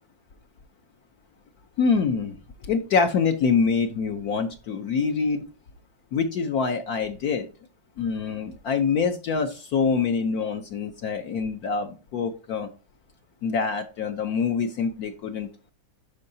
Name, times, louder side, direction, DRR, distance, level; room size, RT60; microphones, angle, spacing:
voice 1, 1.8-2.4 2.7-5.4 6.1-7.5 8.0-12.7 13.4-15.7, left 5 dB, 65° left, 6 dB, 1.0 m, -25 dB
12.0 x 4.7 x 2.7 m, 0.34 s
omnidirectional pair, 2.1 m